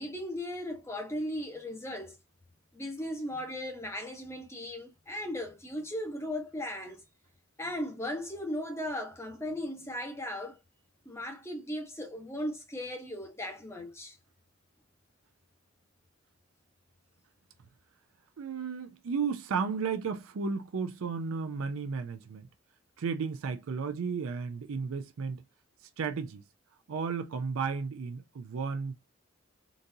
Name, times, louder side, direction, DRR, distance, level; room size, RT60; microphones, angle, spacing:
voice 1, 0.0-2.2 2.7-7.0 7.6-10.6 11.0-14.2, left 1 dB, 10° left, 0.8 m, -37 dB
voice 2, 18.4-22.4 23.0-25.4 25.8-26.4 26.9-28.9, right 5 dB, 75° right, 0.4 m, -33 dB
3.9 x 2.5 x 2.7 m
head